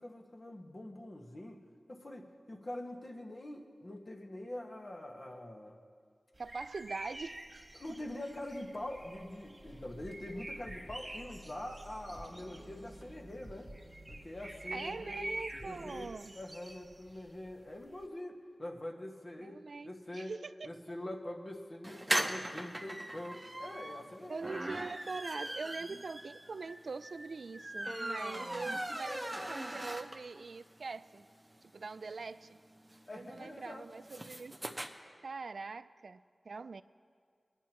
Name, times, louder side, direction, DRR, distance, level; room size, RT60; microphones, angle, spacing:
voice 1, 0.0-1.6 1.9-5.8 7.7-13.7 14.1-15.2 15.6-19.6 19.8-20.3 20.6-24.4 25.9-26.0 28.6-28.8 29.0-29.5 33.1-33.8, left 1 dB, 50° left, 1 dB, 1.4 m, -44 dB
sound 1, 6.3-18.0, right 1 dB, 40° right, 1.4 m, -48 dB
voice 2, 6.4-7.6 14.7-16.3 19.4-20.7 24.3-31.2 31.7-32.6 33.1-34.7 35.2-36.8, right 4 dB, 80° right, 14 dB, 0.3 m, -43 dB
sound 2, 9.6-16.1, right 1 dB, 20° left, 1.4 m, -53 dB
sound 3, 21.8-30.4 30.8-30.9 31.1-31.2 31.5-34.9, right 1 dB, 20° right, 0.9 m, -39 dB
22.5 x 10.5 x 3.0 m, 2.2 s
wide cardioid pair, 60°, 0 cm